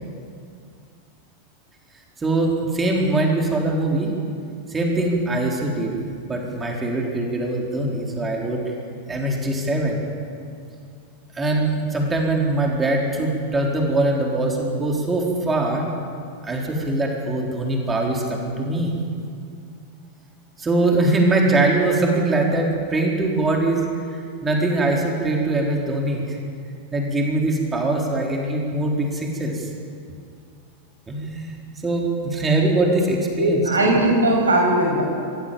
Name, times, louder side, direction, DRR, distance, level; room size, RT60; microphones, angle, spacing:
voice 1, 2.2-4.1 4.7-6.0 6.3-8.7 9.1-10.0 11.3-15.9 16.4-19.0 20.6-23.8 24.4-26.4 26.9-29.7 31.1-31.6 31.8-33.6, right 2 dB, 15° right, 0 dB, 4.0 m, -22 dB
voice 2, 33.3-35.0, right 1 dB, 75° right, 0 dB, 6.9 m, -19 dB
26.0 x 16.5 x 7.4 m, 2.3 s
figure-of-eight pair, 90°, 0 cm